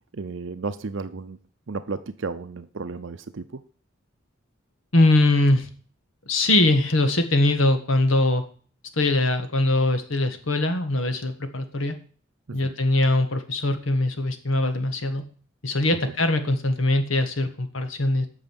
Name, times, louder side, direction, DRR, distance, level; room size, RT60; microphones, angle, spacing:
voice 1, 0.1-1.4 1.7-3.6 12.5-12.7, right 4 dB, 65° right, 10 dB, 0.6 m, -33 dB
voice 2, 4.9-5.7 6.3-8.4 9.0-12.0 12.5-15.2 15.6-18.3, left 2 dB, 90° left, 8 dB, 1.7 m, -22 dB
8.9 x 6.7 x 7.9 m, 0.43 s
head